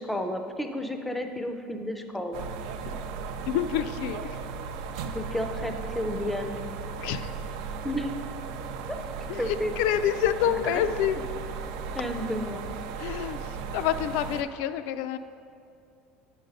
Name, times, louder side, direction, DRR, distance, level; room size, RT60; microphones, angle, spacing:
voice 1, 0.0-2.5 5.1-6.7 7.8-8.1 9.4-9.7 10.6-10.8 11.9-12.7, left 1 dB, 5° left, 6 dB, 0.4 m, -32 dB
sound 1, 2.3-14.4, right 5 dB, 85° right, 0.5 m, -36 dB
voice 2, 3.5-4.2 7.0-7.2 9.3-11.2 13.0-13.4 13.7-15.2, left 10 dB, 70° left, 11 dB, 0.3 m, -27 dB
9.4 x 5.1 x 4.0 m, 2.4 s
cardioid pair, 165°, 4 cm